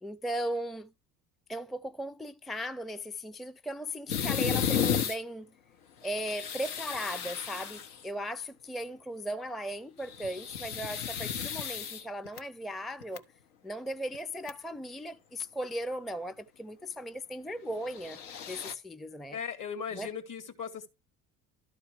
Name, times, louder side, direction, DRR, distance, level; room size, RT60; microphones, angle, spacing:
voice 1, 0.0-0.9 1.5-5.5 6.0-13.2 13.6-18.2 18.5-19.4 19.9-20.1, equal, ahead, 0.5 m, -37 dB
sound 1, 4.1-5.2 6.0-8.0 10.0-12.4 13.0-13.2 14.1-14.2 14.5-14.6 17.8-18.7, left 8 dB, 80° left, 1.4 m, -33 dB
voice 2, 19.3-20.9, left 7 dB, 50° left, 2.8 m, -38 dB
13.0 x 4.6 x 4.7 m
hypercardioid pair, 70°, 38 cm